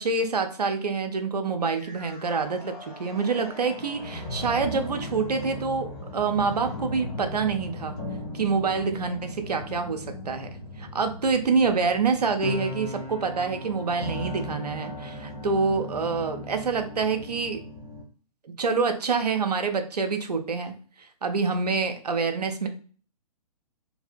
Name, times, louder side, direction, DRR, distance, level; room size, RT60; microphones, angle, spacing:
voice 1, 0.0-8.0 8.3-10.5 10.8-17.6 18.6-22.7, right 4 dB, 85° right, 6 dB, 0.5 m, -26 dB
sound 1, 1.6-18.0, left 2 dB, 15° left, 0.4 m, -38 dB
2.6 x 2.0 x 2.5 m, 0.41 s
figure-of-eight pair, 130°, 20 cm